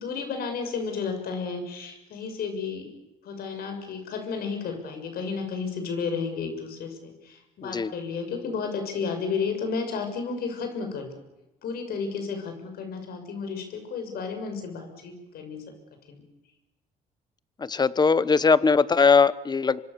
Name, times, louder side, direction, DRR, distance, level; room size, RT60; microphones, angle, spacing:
voice 1, 0.0-2.9 3.2-11.1 11.6-15.7 16.1-16.2, left 5 dB, 65° left, 6 dB, 6.8 m, -32 dB
voice 2, 17.6-19.8, left 5 dB, 25° left, 17 dB, 1.1 m, -20 dB
26.0 x 25.0 x 7.0 m, 1.0 s
cardioid pair, 110°, 17 cm